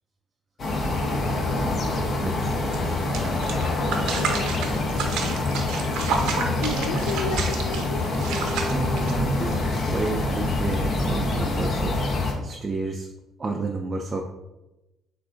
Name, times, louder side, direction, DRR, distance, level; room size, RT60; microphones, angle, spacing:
sound 1, 0.6-12.3, left 2 dB, 40° left, 0.8 m, -26 dB
voice 1, 1.1-1.5 2.2-3.3 8.7-13.1 13.4-14.2, right 3 dB, 25° right, 1 dB, 0.4 m, -32 dB
sound 2, 2.3-10.0, equal, 65° left, 1.5 m, -44 dB
sound 3, 2.7-2.8 3.1-9.5, right 5 dB, 80° right, 0.7 m, -30 dB
voice 2, 4.1-4.8 6.3-8.1, left 4 dB, 90° left, 6 dB, 0.3 m, -33 dB
7.2 x 2.6 x 2.5 m, 0.99 s
cardioid pair, 115°, 0 cm